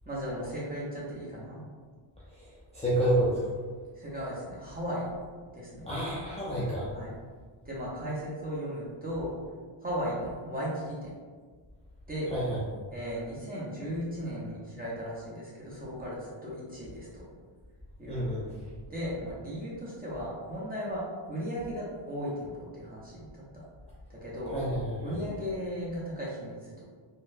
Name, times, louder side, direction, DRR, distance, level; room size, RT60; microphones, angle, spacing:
voice 1, 0.1-1.6 4.0-5.1 5.5-5.9 6.9-7.1 7.6-9.3 9.8-11.1 12.1-12.3 12.9-17.2 18.0-18.3 18.9-23.6 24.1-24.6 25.0-26.8, equal, 20° right, -7 dB, 0.7 m, -36 dB
voice 2, 2.3-3.4 5.9-6.9 12.3-12.6 18.1-18.4 24.5-25.1, right 1 dB, 15° left, -10 dB, 0.4 m, -29 dB
3.8 x 2.2 x 2.6 m, 1.5 s
wide cardioid pair, 165°, 50 cm